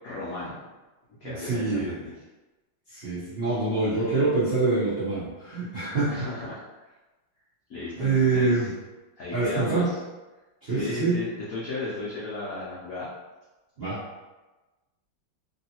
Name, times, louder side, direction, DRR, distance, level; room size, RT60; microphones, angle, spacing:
voice 1, 0.0-0.6 1.2-2.1 6.1-6.6 7.7-8.7 9.2-10.0 10.7-13.1, left 2 dB, 75° left, -7 dB, 0.7 m, -34 dB
voice 2, 1.2-2.0 2.9-6.2 8.0-8.7 9.3-9.9 10.6-11.2 13.8-14.0, right 3 dB, 60° right, -12 dB, 0.6 m, -25 dB
3.2 x 2.7 x 2.8 m, 1.1 s
omnidirectional pair, 2.3 m